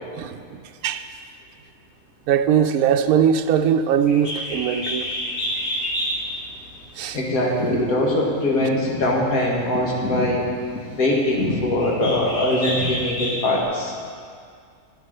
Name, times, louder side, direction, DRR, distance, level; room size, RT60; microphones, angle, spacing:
voice 1, 0.2-1.1 2.3-5.1 7.0-7.2, right 8 dB, 85° right, 7 dB, 1.0 m, -20 dB
Bird, 4.0-13.6, equal, 70° left, 2.8 m, -31 dB
voice 2, 7.1-10.4 10.9-13.9, left 1 dB, 90° left, -2 dB, 2.1 m, -22 dB
10.5 x 9.5 x 6.5 m, 2.2 s
omnidirectional pair, 1.5 m